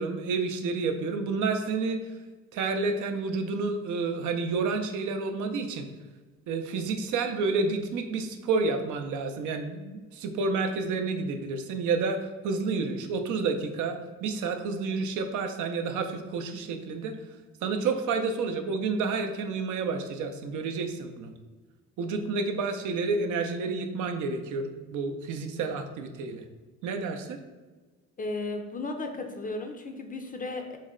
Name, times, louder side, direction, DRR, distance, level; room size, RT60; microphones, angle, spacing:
voice 1, 0.0-2.0 2.5-5.9 6.5-17.2 17.6-21.3 22.0-26.4 26.8-27.4, right 4 dB, 80° right, 6 dB, 0.5 m, -30 dB
voice 2, 28.2-30.8, left 2 dB, 30° left, 5 dB, 0.4 m, -35 dB
4.0 x 2.1 x 3.6 m, 1.3 s
cardioid pair, 90°, 30 cm